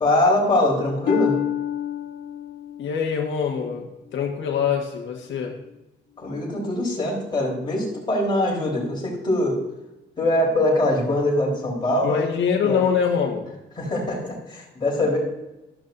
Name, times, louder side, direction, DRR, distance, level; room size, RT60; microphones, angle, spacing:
voice 1, 0.0-1.4 6.2-9.6 10.2-12.2 12.6-12.8 13.8-15.2, left 1 dB, 25° left, -4 dB, 4.1 m, -22 dB
Harp, 1.1-4.8 5.4-5.8 6.4-6.5, left 11 dB, 65° left, 1.5 m, -30 dB
voice 2, 2.8-5.6 12.0-13.5, left 7 dB, 90° left, 1 dB, 1.6 m, -24 dB
13.0 x 12.5 x 2.7 m, 0.95 s
wide cardioid pair, 175°, 19 cm